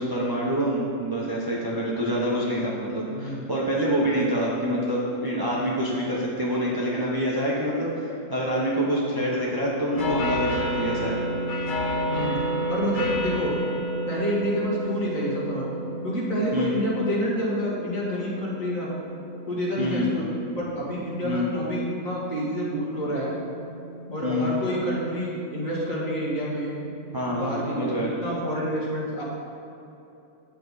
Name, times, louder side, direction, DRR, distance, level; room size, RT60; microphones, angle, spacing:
voice 1, 0.0-11.2 16.5-16.7 19.8-20.2 21.2-21.5 24.2-24.6 27.1-28.1, equal, 20° right, -5 dB, 0.5 m, -26 dB
voice 2, 3.1-3.4 12.1-12.4 12.7-13.6 14.1-15.7 16.0-18.9 19.5-20.3 20.6-23.3 24.1-26.7 27.3-29.2, equal, 50° left, -6 dB, 2.0 m, -28 dB
sound 1, 9.9-27.2, equal, 85° left, 0.4 m, -32 dB
9.0 x 7.1 x 4.1 m, 2.9 s
omnidirectional pair, 2.0 m